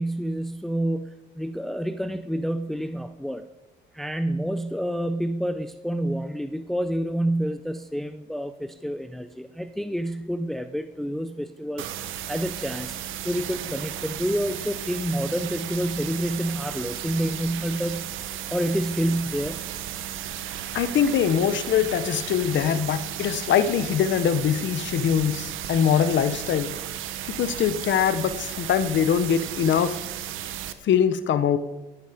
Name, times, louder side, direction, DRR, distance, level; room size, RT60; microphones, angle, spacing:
voice 1, 0.0-3.4 3.9-11.9 12.3-13.0 13.2-18.1 18.5-19.6 20.2-21.1, equal, ahead, 9 dB, 0.7 m, -28 dB
sound 1, 11.8-30.7, right 11 dB, 90° right, 1.0 m, -34 dB
voice 2, 20.7-26.8 27.3-30.0 30.8-31.6, left 8 dB, 70° left, 12 dB, 1.0 m, -23 dB
17.5 x 10.5 x 5.1 m, 1.0 s
cardioid pair, 90°, 20 cm